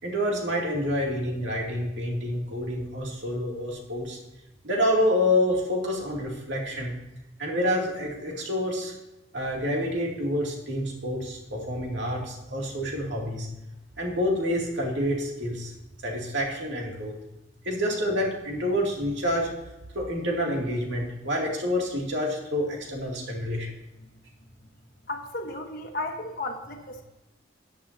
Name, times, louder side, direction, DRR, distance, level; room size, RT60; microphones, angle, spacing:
voice 1, 0.0-4.2 4.6-6.9 7.4-8.9 9.3-13.5 14.0-15.7 16.0-17.1 17.6-19.5 19.9-23.7, left 1 dB, 65° right, -1 dB, 2.6 m, -28 dB
voice 2, 25.1-27.0, left 2 dB, 50° left, 1 dB, 1.3 m, -34 dB
13.5 x 9.4 x 2.8 m, 1.0 s
head